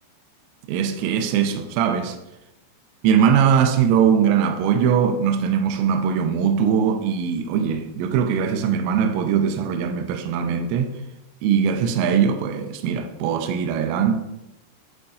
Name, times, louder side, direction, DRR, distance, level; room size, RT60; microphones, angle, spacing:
voice 1, 0.7-2.2 3.0-11.0 11.4-14.2, right 7 dB, 85° right, 3.2 m, -21 dB
11.0 x 5.5 x 2.7 m
omnidirectional pair, 5.8 m